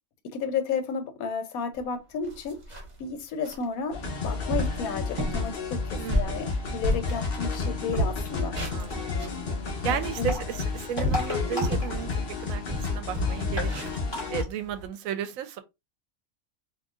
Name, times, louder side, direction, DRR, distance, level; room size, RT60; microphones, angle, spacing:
voice 1, 0.3-2.6 3.0-8.6 9.9-10.3, left 6 dB, 80° left, 1.1 m, -32 dB
sound 1, 1.8-1.9 2.2-3.0 3.4-3.6 4.1-4.2 4.5-4.8 5.2-5.5 5.9-7.6 7.9-9.4 9.8-12.0 12.3-12.5 12.7-14.9, right 1 dB, 35° right, 1.0 m, -31 dB
sound 2, 3.9-14.4, left 4 dB, 45° left, 0.9 m, -31 dB
voice 2, 6.0-6.4 8.7-9.4 9.8-12.1 12.4-13.7 14.3-15.6, right 8 dB, 75° right, 1.0 m, -34 dB
sound 3, 7.9-8.3 10.0-12.5 12.8-12.9 13.1-13.2 13.5-14.4, left 1 dB, 20° left, 1.6 m, -34 dB
3.8 x 2.6 x 2.4 m
omnidirectional pair, 1.5 m